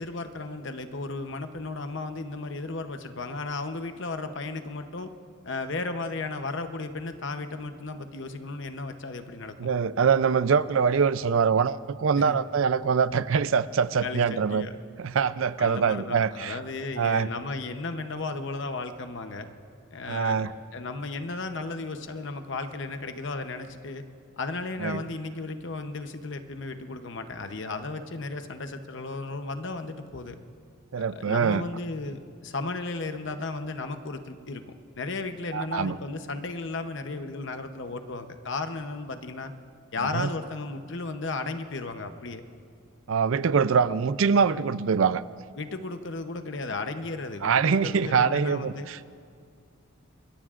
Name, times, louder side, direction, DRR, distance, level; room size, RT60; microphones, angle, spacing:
voice 1, 0.0-5.1 5.4-9.7 12.1-12.4 14.0-14.7 15.6-19.5 19.9-24.0 24.4-30.4 31.0-34.6 35.0-39.5 39.9-42.4 45.6-48.9, left 3 dB, 60° left, 7 dB, 0.8 m, -34 dB
voice 2, 9.6-14.7 15.0-16.5 17.0-17.3 20.1-20.5 24.8-25.0 30.9-31.7 35.5-36.0 40.1-40.3 43.1-45.2 47.4-49.0, right 6 dB, 70° right, 16 dB, 0.5 m, -24 dB
26.0 x 21.5 x 2.5 m, 2.3 s
head